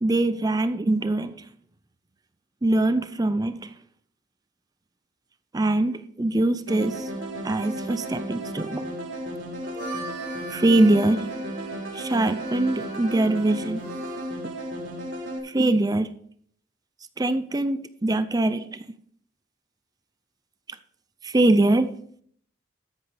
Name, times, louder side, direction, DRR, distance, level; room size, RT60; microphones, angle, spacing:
voice 1, 0.0-1.4 2.6-3.7 5.5-7.1 7.4-8.8 10.5-11.3 11.9-13.9 15.4-16.1 17.2-18.8 21.2-22.0, right 2 dB, 20° right, 12 dB, 0.4 m, -23 dB
sound 1, 6.7-15.4, right 1 dB, 70° right, 3.3 m, -34 dB
Harmonica, 9.5-14.4, right 3 dB, 50° right, 4.0 m, -41 dB
13.5 x 10.5 x 3.3 m, 0.63 s
head